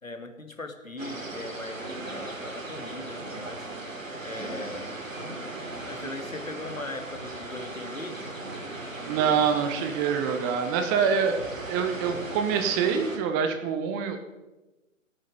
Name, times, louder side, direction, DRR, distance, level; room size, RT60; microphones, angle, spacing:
voice 1, 0.0-3.7 4.2-5.0 5.8-8.2, left 2 dB, 90° left, 6 dB, 2.0 m, -39 dB
sound 1, 1.0-13.2, right 2 dB, 75° right, 3.2 m, -37 dB
voice 2, 9.1-14.2, right 6 dB, 15° right, 6 dB, 0.6 m, -26 dB
17.5 x 8.7 x 5.2 m, 1.1 s
figure-of-eight pair, 125°, 39 cm